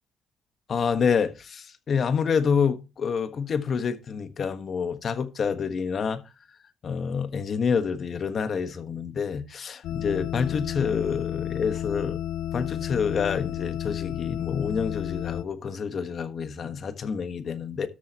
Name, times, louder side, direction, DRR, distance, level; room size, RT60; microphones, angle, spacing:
voice 1, 0.7-6.2 6.8-12.2 12.5-17.9, left 6 dB, 50° left, 1.4 m, -28 dB
sound 1, 9.8-15.4, left 11 dB, 85° left, 0.6 m, -32 dB
13.0 x 7.7 x 3.0 m
cardioid pair, 90°, 0 cm